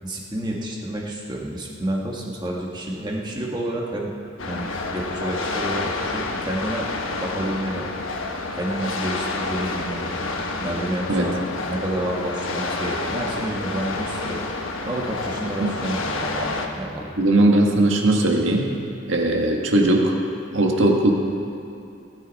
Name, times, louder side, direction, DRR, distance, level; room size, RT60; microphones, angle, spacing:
voice 1, 0.0-4.1 4.5-6.8 7.1-8.0 8.5-10.1 10.6-14.4 14.8-17.1, right 1 dB, 20° right, -2 dB, 1.6 m, -29 dB
sound 1, 4.4-16.7, left 3 dB, 90° left, 1.2 m, -29 dB
voice 2, 17.2-18.7 19.1-20.1 20.5-21.1, right 1 dB, 75° right, 1 dB, 1.6 m, -19 dB
18.5 x 10.0 x 4.2 m, 2.8 s
head